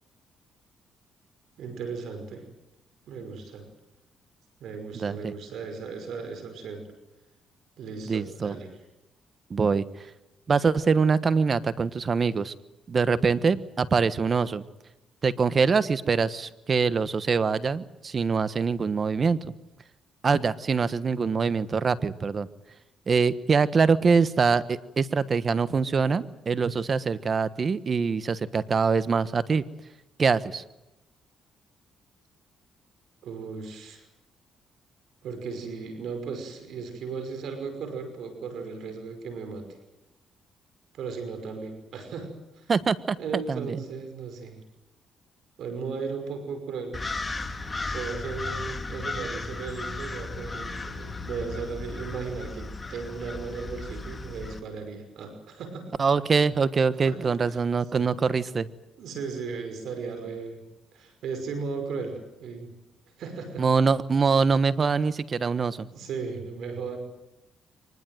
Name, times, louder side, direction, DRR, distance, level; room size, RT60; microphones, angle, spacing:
voice 1, 1.6-2.5 3.1-3.7 4.6-6.9 7.8-8.7 33.2-34.1 35.2-39.7 40.9-42.7 43.2-44.6 45.6-47.0 47.9-55.9 57.1-57.6 57.9-58.1 59.0-60.6 60.9-62.8 63.2-63.7 65.9-67.0, right 5 dB, 75° right, 7 dB, 5.6 m, -36 dB
voice 2, 4.9-5.3 8.1-8.6 9.5-10.1 10.5-12.5 12.9-14.6 15.2-19.5 20.2-22.5 23.1-29.6 30.2-30.6 42.7-43.8 56.0-58.7 63.6-65.9, right 5 dB, 40° right, 15 dB, 1.2 m, -24 dB
sound 1, 46.9-54.6, left 3 dB, 25° left, 2.2 m, -35 dB
24.0 x 20.5 x 9.3 m, 0.92 s
cardioid pair, 90°, 0 cm